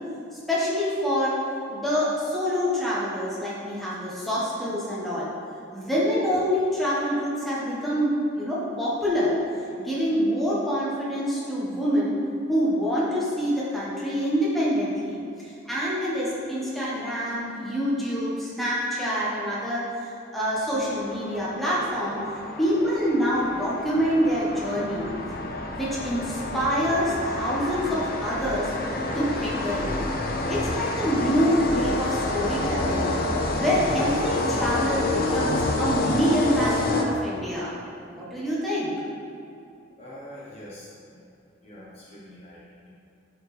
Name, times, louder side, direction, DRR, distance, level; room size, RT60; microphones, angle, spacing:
voice 1, 0.5-1.4 1.7-5.3 5.7-9.3 9.8-12.2 12.5-22.2 22.6-25.1 25.7-28.7 29.1-30.0 30.5-33.0 33.5-37.7 38.1-38.9, equal, ahead, -8 dB, 1.5 m, -26 dB
sound 1, 20.7-37.5, left 2 dB, 45° left, 0.6 m, -28 dB
voice 2, 40.0-41.2 41.6-42.9, left 1 dB, 30° left, -7 dB, 1.0 m, -44 dB
10.5 x 4.8 x 3.5 m, 2.6 s
head